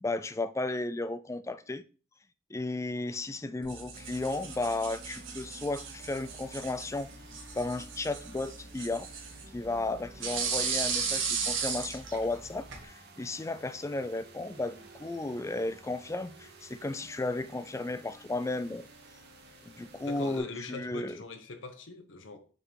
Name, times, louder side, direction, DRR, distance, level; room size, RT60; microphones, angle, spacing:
voice 1, 0.0-1.8 2.5-7.1 7.6-9.1 9.5-18.9 19.7-21.2, left 2 dB, 15° left, 0.3 m, -34 dB
sound 1, 3.6-12.8, right 5 dB, 70° right, 1.6 m, -36 dB
sound 2, 3.9-20.4, right 3 dB, 55° right, 1.4 m, -53 dB
voice 2, 20.1-22.5, left 3 dB, 70° left, 1.0 m, -42 dB
6.5 x 3.8 x 4.7 m
head